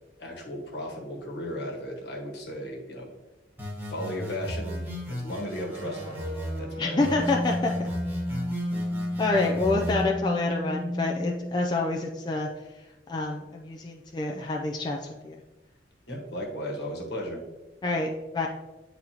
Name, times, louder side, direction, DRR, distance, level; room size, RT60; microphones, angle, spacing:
voice 1, 0.2-3.1 3.9-6.2 6.6-7.2 16.1-17.4, equal, 60° left, 0 dB, 1.3 m, -35 dB
sound 1, 3.6-6.6 7.0-10.0, equal, 10° right, 1.2 m, -36 dB
sound 2, 5.8-11.9, left 1 dB, 85° right, 1.3 m, -32 dB
voice 2, 6.8-7.9 9.2-12.5 12.8-12.9 13.1-15.4 17.8-18.5, left 3 dB, 25° left, 0 dB, 0.4 m, -28 dB
8.8 x 4.0 x 2.9 m, 1.1 s
head